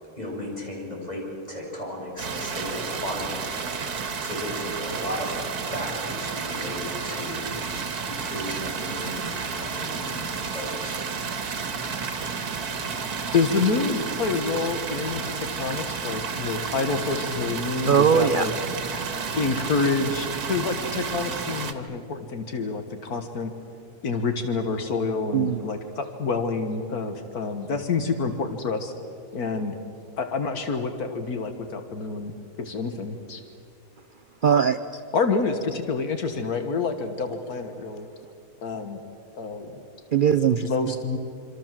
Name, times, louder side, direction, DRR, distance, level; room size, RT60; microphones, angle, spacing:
voice 1, 0.2-1.2 1.5-3.4 3.6-3.8 4.2-7.7 8.0-11.0, equal, 25° left, -2 dB, 7.1 m, -35 dB
sound 1, 2.2-21.7, right 5 dB, 85° right, 2.1 m, -31 dB
voice 2, 13.3-18.5 19.3-23.5 24.0-28.9 29.3-29.7 30.2-32.3 32.6-33.4 35.1-38.1 38.6-39.0 39.4-39.8 40.6-41.2, left 4 dB, 75° left, 7 dB, 1.9 m, -27 dB
voice 3, 17.9-18.5 25.3-25.6 34.4-35.0 40.1-40.9, right 7 dB, 50° right, 11 dB, 0.7 m, -20 dB
26.5 x 26.0 x 7.5 m, 2.4 s
omnidirectional pair, 1.6 m